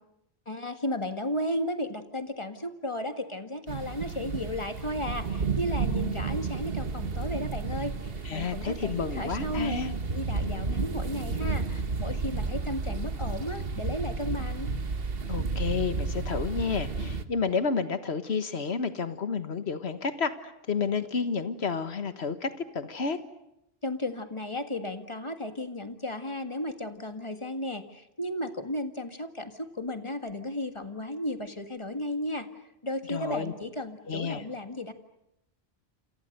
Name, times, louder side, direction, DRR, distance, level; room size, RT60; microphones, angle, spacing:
voice 1, 0.5-9.8 10.1-14.7 23.8-32.5 32.8-34.9, left 1 dB, 30° left, 8 dB, 1.8 m, -34 dB
sound 1, 3.7-17.2, right 4 dB, 65° right, 1.6 m, -32 dB
voice 2, 8.3-9.9 15.3-23.2 33.1-33.5 34.1-34.4, left 5 dB, 80° left, 11 dB, 1.6 m, -30 dB
28.5 x 27.5 x 6.7 m, 0.83 s
omnidirectional pair, 1.1 m